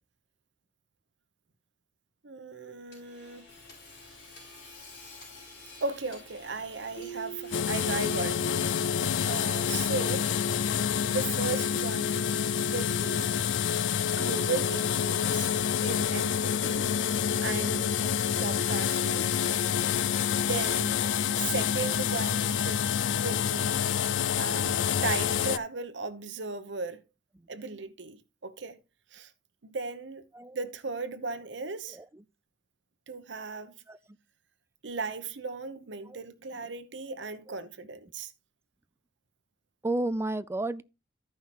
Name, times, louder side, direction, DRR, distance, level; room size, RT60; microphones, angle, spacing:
voice 1, 2.2-3.5 5.8-8.7 9.2-10.3 11.1-13.3 14.2-15.5 15.8-16.9 17.4-17.9 18.4-19.3 20.4-21.0 21.3-23.8 24.4-27.0 27.5-28.8 29.1-29.3 29.6-30.2 30.5-32.0 33.1-33.7 34.8-38.3, right 4 dB, 70° right, 0.9 m, -36 dB
Hammer / Sawing, 2.9-11.1, left 3 dB, 65° left, 5.3 m, -50 dB
Keyboard (musical), 7.0-9.8, right 7 dB, 40° left, 1.3 m, -45 dB
sound 1, 7.5-25.6, left 8 dB, 80° left, 0.4 m, -28 dB
voice 2, 39.8-40.8, right 2 dB, 15° right, 0.4 m, -31 dB
14.0 x 5.6 x 3.0 m
head